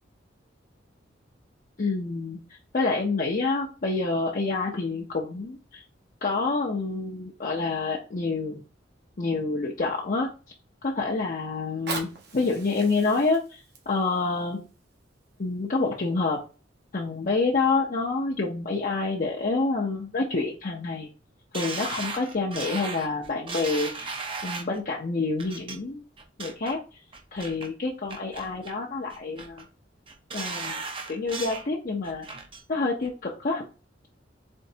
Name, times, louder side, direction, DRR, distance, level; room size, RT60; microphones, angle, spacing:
voice 1, 1.8-2.4 2.7-5.8 6.2-8.6 9.2-10.3 10.8-12.1 12.3-13.6 13.9-14.6 15.4-16.4 16.9-21.1 21.5-24.1 24.4-26.0 26.4-26.8 27.3-29.6 30.3-30.8 31.1-32.3 32.7-33.7, left 3 dB, 45° left, -3 dB, 0.7 m, -27 dB
Fire, 11.6-16.6 17.2-17.3, right 4 dB, 60° right, 1.0 m, -41 dB
sound 1, 21.5-24.8 25.4-25.8 26.2-26.7 27.1-27.7 28.1-28.8 29.1-29.6 30.1-31.7 32.0-32.6 33.0-33.1, right 4 dB, 30° right, 0.7 m, -36 dB
4.4 x 3.1 x 2.8 m, 0.33 s
head